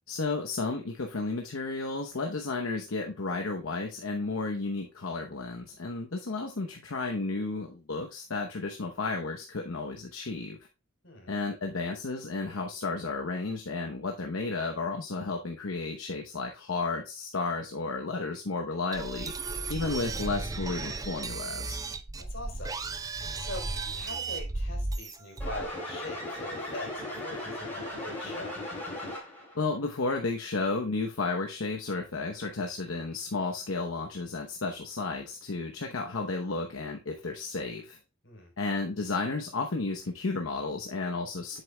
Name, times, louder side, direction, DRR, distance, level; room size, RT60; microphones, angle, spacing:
voice 1, 0.1-10.6 11.3-19.3 19.7-21.8 29.5-38.0 38.6-41.6, left 3 dB, 85° left, 3 dB, 0.9 m, -33 dB
sound 1, 18.9-25.7, right 3 dB, 15° right, 0.4 m, -35 dB
voice 2, 22.2-22.7 23.4-23.6 23.9-28.6 38.2-38.5, left 2 dB, 65° left, 1 dB, 3.5 m, -42 dB
sound 2, 25.4-29.5, left 1 dB, 10° left, 3.5 m, -37 dB
8.0 x 7.7 x 2.2 m, 0.28 s
head